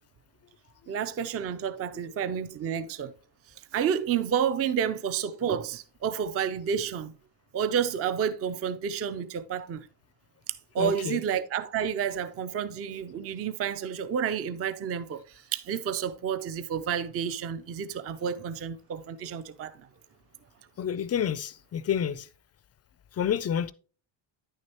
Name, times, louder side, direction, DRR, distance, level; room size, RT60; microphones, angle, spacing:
voice 1, 0.9-3.1 3.7-7.1 7.5-9.8 10.7-15.2 15.5-19.8, right 8 dB, 30° right, 0.4 m, -30 dB
voice 2, 10.8-11.2 20.8-22.3 23.1-23.7, left 9 dB, 35° left, 0.4 m, -29 dB
9.5 x 6.4 x 2.9 m
cardioid pair, 135°, 49 cm